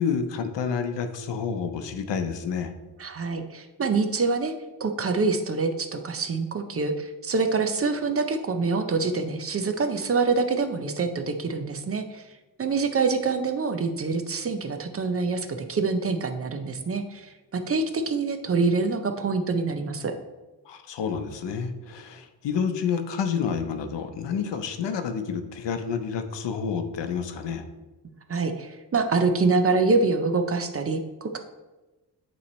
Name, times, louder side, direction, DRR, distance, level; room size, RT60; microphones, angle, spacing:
voice 1, 0.0-2.7 20.7-27.6, left 6 dB, 80° left, 8 dB, 0.8 m, -29 dB
voice 2, 3.0-4.5 4.8-12.3 12.6-20.1 28.3-31.4, right 4 dB, 35° right, 7 dB, 0.5 m, -25 dB
8.5 x 3.2 x 4.1 m, 1.1 s
wide cardioid pair, 130°, 42 cm